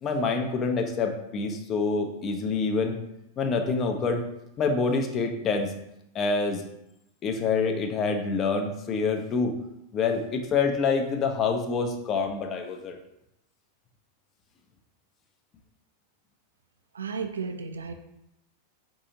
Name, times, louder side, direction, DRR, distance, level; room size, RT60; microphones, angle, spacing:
voice 1, 0.0-3.0 3.4-4.2 4.6-5.7 6.1-6.6 7.2-9.6 9.9-13.0, left 4 dB, 30° left, 4 dB, 0.5 m, -26 dB
voice 2, 16.9-17.9, right 5 dB, 70° right, 6 dB, 0.3 m, -33 dB
4.0 x 2.7 x 2.7 m, 0.83 s
figure-of-eight pair, 90°, 0 cm